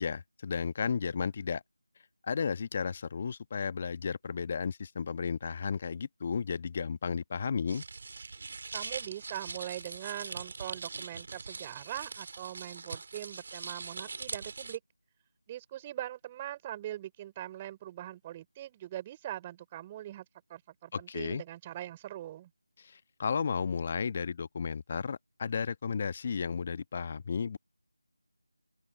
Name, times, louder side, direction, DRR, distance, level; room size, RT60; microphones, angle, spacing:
voice 1, 0.0-1.6 2.2-7.8 20.9-21.4 22.8-27.6, left 6 dB, 30° left, 1.3 m, -33 dB
sound 1, 7.7-14.8, right 4 dB, 40° right, 4.9 m, -42 dB
voice 2, 8.7-14.8 15.5-20.2 20.5-22.5, right 13 dB, 15° right, 4.8 m, -41 dB
open air
figure-of-eight pair, 165°, 0 cm